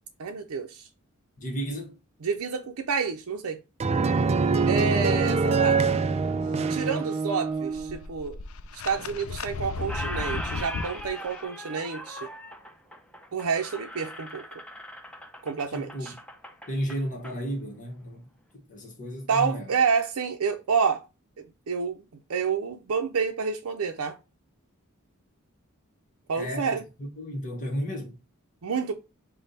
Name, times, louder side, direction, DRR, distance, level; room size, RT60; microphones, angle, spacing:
voice 1, 0.2-0.9 2.2-3.6 4.7-5.8 6.7-8.4 8.8-12.3 13.3-14.4 15.4-16.1 19.3-21.0 21.7-22.0 22.3-24.2 26.3-26.8 28.6-28.9, right 5 dB, 80° right, 0.5 m, -28 dB
voice 2, 1.4-1.9 15.7-16.1 16.7-18.2 18.5-19.7 26.3-28.2, equal, 35° left, 1.2 m, -33 dB
sound 1, 3.8-8.0, right 4 dB, 30° right, 0.3 m, -24 dB
sound 2, 7.5-11.1, left 4 dB, 65° left, 0.4 m, -35 dB
Squeak, 8.9-9.5 9.8-17.4, equal, 5° left, 0.7 m, -39 dB
5.3 x 2.2 x 3.9 m
head